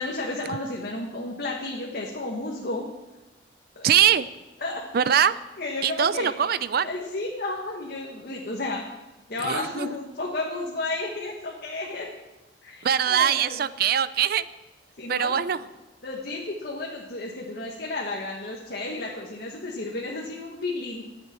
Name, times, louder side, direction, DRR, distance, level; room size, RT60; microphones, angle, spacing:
voice 1, 0.0-2.9 3.7-3.9 4.6-4.8 5.6-6.3 6.8-8.8 9.3-12.1 12.6-13.6 15.0-15.4 16.0-21.0, left 2 dB, 60° left, -1 dB, 1.5 m, -32 dB
voice 2, 3.8-4.3 4.9-5.3 5.8-6.9 9.4-9.9 12.8-14.5 15.1-15.6, right 9 dB, 60° right, 15 dB, 0.5 m, -22 dB
20.5 x 7.9 x 4.4 m, 1.1 s
head